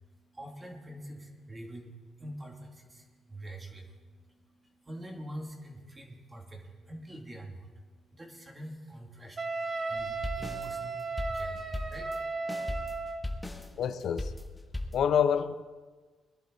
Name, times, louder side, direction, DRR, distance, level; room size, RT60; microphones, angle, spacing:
voice 1, 0.0-13.1, right 1 dB, 20° right, 2.6 m, -46 dB
Wind instrument woodwind instrument, 9.4-13.3, right 3 dB, 40° right, 1.6 m, -35 dB
sound 1, 10.0-15.1, left 1 dB, 10° left, 1.6 m, -38 dB
voice 2, 13.8-14.3 14.9-15.6, left 8 dB, 65° left, 0.8 m, -27 dB
21.5 x 11.0 x 4.1 m
cardioid pair, 90°, 0 cm